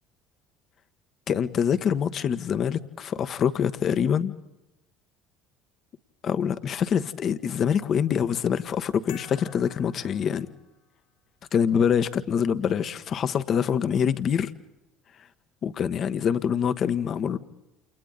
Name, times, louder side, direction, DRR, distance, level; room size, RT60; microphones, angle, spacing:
voice 1, 1.3-4.3 6.2-10.5 11.5-14.5 15.6-17.4, left 8 dB, 45° left, 11 dB, 1.3 m, -25 dB
sound 1, 9.1-11.0, left 10 dB, 75° left, 3.4 m, -48 dB
29.0 x 29.0 x 4.0 m, 0.96 s
hypercardioid pair, 70°, 0 cm